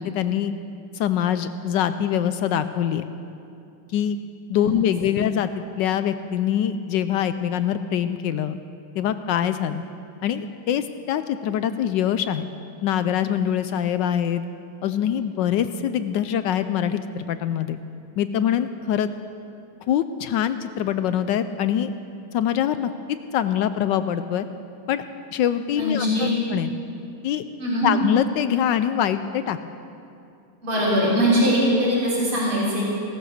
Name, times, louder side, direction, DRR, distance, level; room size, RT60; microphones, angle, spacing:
voice 1, 0.1-0.5 0.9-3.0 3.9-4.2 4.5-8.6 9.0-9.8 10.2-12.4 12.8-14.4 14.8-17.8 18.2-19.1 19.9-21.9 22.3-22.9 23.3-24.5 24.9-25.0 25.3-26.8 27.2-27.4 27.8-29.6, left 9 dB, 75° left, 11 dB, 1.1 m, -24 dB
voice 2, 25.8-26.3 27.6-27.9 30.6-32.8, equal, 85° right, -7 dB, 4.8 m, -21 dB
17.0 x 13.0 x 6.5 m, 2.6 s
omnidirectional pair, 2.3 m